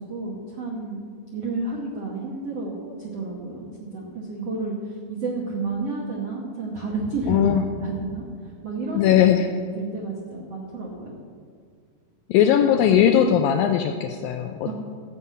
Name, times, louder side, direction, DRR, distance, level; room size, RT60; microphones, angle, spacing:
voice 1, 0.0-7.5 7.8-9.2 9.6-11.2 14.6-14.7, right 3 dB, 70° right, -2 dB, 1.5 m, -31 dB
voice 2, 7.3-7.6 9.0-9.5 12.3-14.7, left 9 dB, 85° left, 5 dB, 2.1 m, -19 dB
13.0 x 5.5 x 8.4 m, 2.1 s
omnidirectional pair, 4.6 m